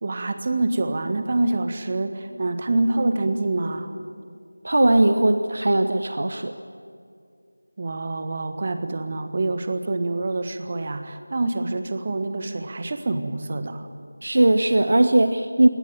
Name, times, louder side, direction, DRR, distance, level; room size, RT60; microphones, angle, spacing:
voice 1, 0.0-3.9 7.8-13.9, right 2 dB, 30° right, 9 dB, 1.5 m, -26 dB
voice 2, 4.6-6.5 14.2-15.7, right 1 dB, 50° right, 9 dB, 1.0 m, -19 dB
21.5 x 18.0 x 9.5 m, 2.4 s
figure-of-eight pair, 170°, 0 cm